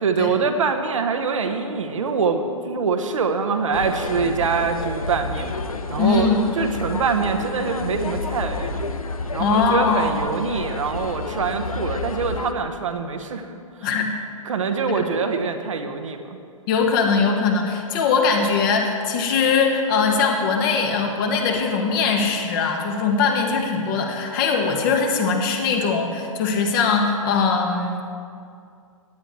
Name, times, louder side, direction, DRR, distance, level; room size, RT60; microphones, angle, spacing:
voice 1, 0.0-5.5 5.9-8.8 9.3-13.4 13.8-14.0 14.4-16.2, right 5 dB, 65° right, 6 dB, 1.1 m, -24 dB
sound 1, 3.7-12.5, left 3 dB, 80° left, 0.8 m, -30 dB
voice 2, 6.0-6.4 9.4-10.2 13.8-14.1 14.9-15.0 16.7-28.0, left 5 dB, 40° left, 3 dB, 1.6 m, -21 dB
17.0 x 10.0 x 3.3 m, 2.3 s
figure-of-eight pair, 115°, 18 cm